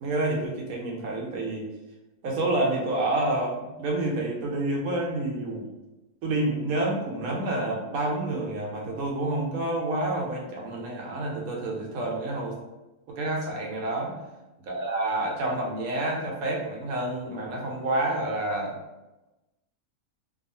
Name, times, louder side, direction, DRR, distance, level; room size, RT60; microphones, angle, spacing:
voice 1, 0.0-1.7 2.2-5.7 6.2-12.6 13.1-14.1 14.7-18.8, right 2 dB, 75° right, -1 dB, 1.0 m, -28 dB
2.5 x 2.3 x 2.6 m, 1.0 s
omnidirectional pair, 1.5 m